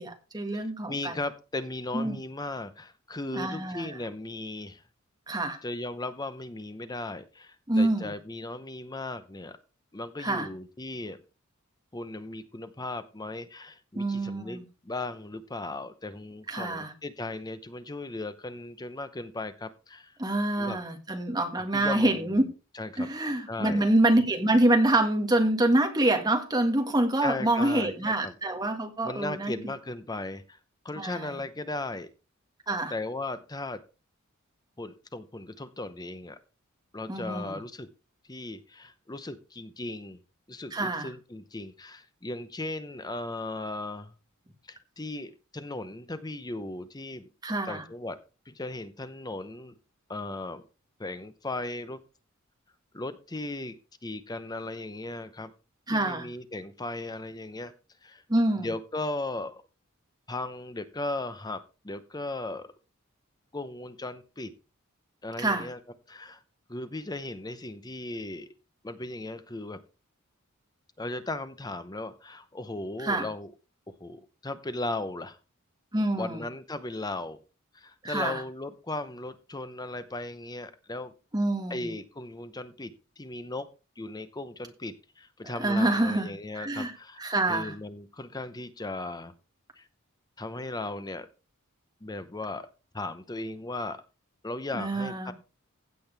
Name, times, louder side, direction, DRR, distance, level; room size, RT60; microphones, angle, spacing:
voice 1, 0.0-1.2 1.9-2.2 3.3-3.9 5.3-5.6 7.7-8.1 10.2-10.5 14.0-14.6 16.5-16.9 20.2-22.4 23.0-29.5 31.0-31.4 32.7-32.9 37.1-37.6 40.7-41.1 47.4-47.8 55.9-56.3 58.3-58.7 65.4-65.7 73.0-73.3 75.9-76.4 78.0-78.4 81.3-81.9 85.4-86.9 87.2-87.7 94.7-95.3, right 1 dB, 20° right, 1.8 m, -26 dB
voice 2, 0.9-4.8 5.6-9.6 9.9-11.2 11.9-20.2 20.6-20.8 21.7-23.1 23.5-23.8 27.2-28.3 29.0-30.6 30.8-32.1 32.9-33.8 34.8-36.4 36.9-37.9 38.3-40.2 40.5-44.1 44.7-47.3 47.7-48.2 48.5-49.8 50.1-50.6 51.0-52.0 52.9-53.8 54.0-55.5 55.9-57.7 58.0-58.2 58.6-59.6 60.3-62.7 63.5-64.5 65.2-65.8 66.1-66.4 66.7-68.5 68.8-69.8 71.0-73.5 73.9-75.4 76.2-77.4 77.7-81.1 81.7-83.7 84.0-87.2 87.5-89.3 89.8-89.9 90.4-91.3 92.0-92.7 92.9-94.0 94.4-95.3, left 2 dB, 20° left, 0.8 m, -37 dB
16.0 x 7.8 x 3.4 m
head